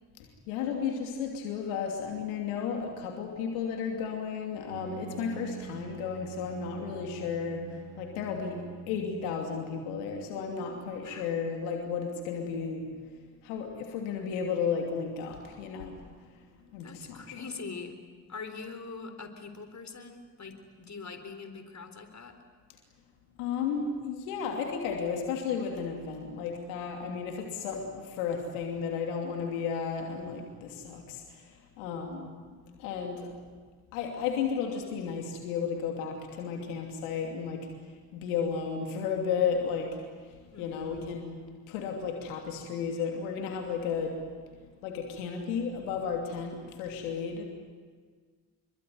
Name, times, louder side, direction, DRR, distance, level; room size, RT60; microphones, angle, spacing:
voice 1, 0.5-7.6 8.0-12.8 13.4-16.0 16.7-17.3 23.4-31.4 31.8-32.3 32.8-33.3 33.9-37.7 38.1-39.9 40.6-41.4 41.7-44.1 44.8-47.5, left 6 dB, 80° left, 2 dB, 2.9 m, -33 dB
Bowed string instrument, 4.7-9.6, right 10 dB, 85° right, 1.6 m, -46 dB
voice 2, 16.8-18.0 18.3-22.4 40.5-41.0, left 4 dB, 40° left, 7 dB, 4.1 m, -43 dB
26.5 x 22.5 x 9.5 m, 1.5 s
hypercardioid pair, 45°, 44 cm